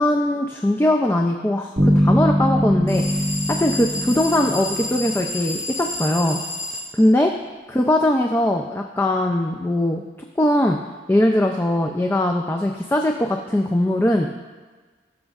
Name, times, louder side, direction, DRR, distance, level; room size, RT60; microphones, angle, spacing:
voice 1, 0.0-6.4 6.9-7.3 7.7-10.0 10.4-10.8 11.1-14.3, left 1 dB, 15° left, 2 dB, 0.3 m, -20 dB
sound 1, 1.8-5.5, equal, 35° right, 1.7 m, -22 dB
sound 2, 2.9-6.9, left 1 dB, 35° left, 2.8 m, -30 dB
18.5 x 6.2 x 2.4 m, 1.4 s
head